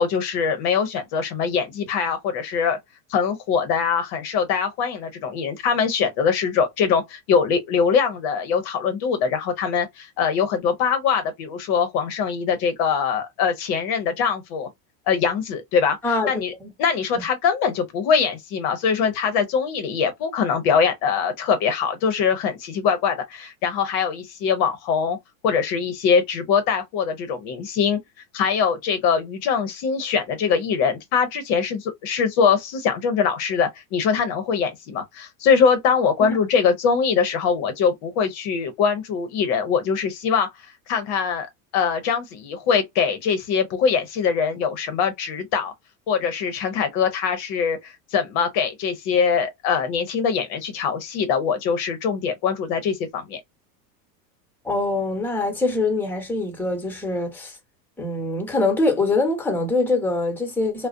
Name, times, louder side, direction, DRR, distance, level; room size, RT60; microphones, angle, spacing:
voice 1, 0.0-2.8 3.1-14.7 15.1-16.0 16.3-16.5 16.8-25.2 25.4-28.0 28.3-40.5 40.9-45.7 46.1-53.4, left 6 dB, 50° left, 0.7 m, -22 dB
voice 2, 54.6-57.6 58.0-60.9, left 2 dB, 5° left, 0.9 m, -23 dB
2.5 x 2.0 x 2.4 m
hypercardioid pair, 105°, 49 cm